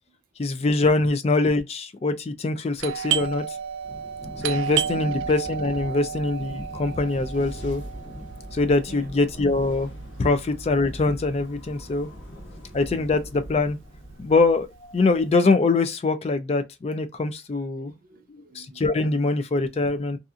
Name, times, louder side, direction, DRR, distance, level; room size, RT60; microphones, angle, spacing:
voice 1, 0.4-3.4 4.4-7.8 8.5-9.9 10.2-12.1 12.7-13.8 14.2-17.9 18.3-20.2, left 3 dB, 30° left, 0.3 m, -23 dB
Doorbell, 2.8-12.2 12.4-12.5 13.2-13.5 13.8-15.2, right 8 dB, 85° right, 0.3 m, -32 dB
Thunder / Rain, 3.8-14.4, equal, 50° left, 1.2 m, -43 dB
voice 2, 5.0-5.3 8.9-9.2 12.1-12.8 17.8-18.8, equal, 45° right, 0.6 m, -48 dB
sound 1, 6.1-15.1, right 1 dB, 80° left, 1.0 m, -43 dB
2.7 x 2.4 x 2.4 m
head